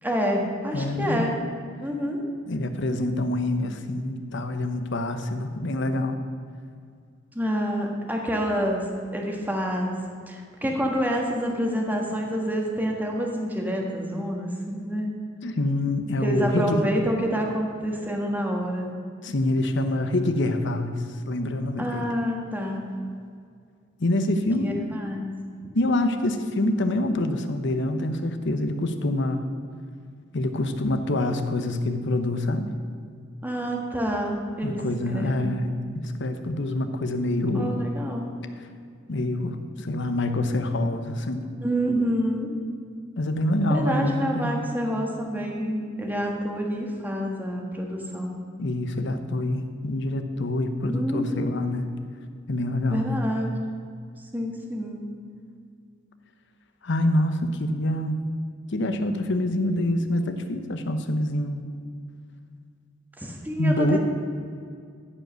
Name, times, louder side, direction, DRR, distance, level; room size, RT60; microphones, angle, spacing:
voice 1, 0.0-1.4 1.8-2.2 7.3-8.8 9.1-9.9 10.3-15.1 16.2-18.8 21.8-22.9 24.4-25.3 33.4-34.8 35.1-35.8 37.5-38.3 41.6-42.5 43.7-48.4 50.8-51.7 52.9-53.6 54.3-55.0 63.2-64.0, equal, 10° right, 0 dB, 1.4 m, -28 dB
voice 2, 0.7-1.3 2.5-6.2 15.4-16.8 19.2-20.9 21.3-22.0 24.0-24.9 25.7-29.4 30.3-32.7 34.6-37.9 39.1-41.4 43.2-44.6 48.6-51.9 52.5-53.1 56.8-58.2 58.7-61.6 63.6-64.0, left 1 dB, 65° left, 8 dB, 0.9 m, -26 dB
14.5 x 5.2 x 6.3 m, 2.2 s
head